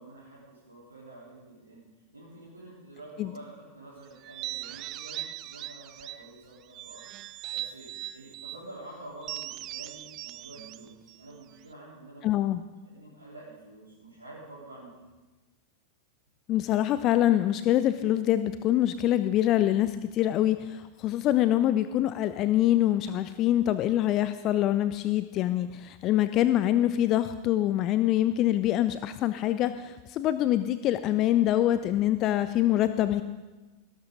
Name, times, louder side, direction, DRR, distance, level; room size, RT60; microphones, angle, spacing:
voice 1, 0.0-1.8 2.1-12.3 12.8-15.1, right 2 dB, 80° right, -9 dB, 3.9 m, -48 dB
sound 1, 4.2-6.3 6.7-8.6 9.2-11.7, right 15 dB, 35° right, 0.4 m, -40 dB
voice 2, 12.2-12.6 16.5-33.2, left 13 dB, 35° left, 12 dB, 0.5 m, -25 dB
18.5 x 11.5 x 3.9 m, 1.2 s
figure-of-eight pair, 90°, 0 cm